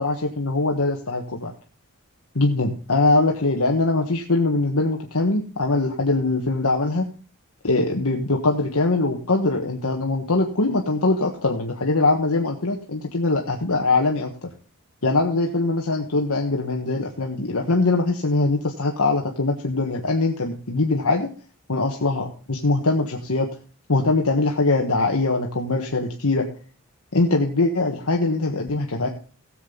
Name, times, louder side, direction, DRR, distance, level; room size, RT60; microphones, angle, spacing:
voice 1, 0.0-1.5 2.3-7.1 7.6-14.3 15.0-21.3 21.7-23.5 23.9-26.4 27.1-29.1, left 2 dB, 75° left, 1 dB, 1.4 m, -22 dB
17.0 x 7.6 x 3.9 m, 0.38 s
head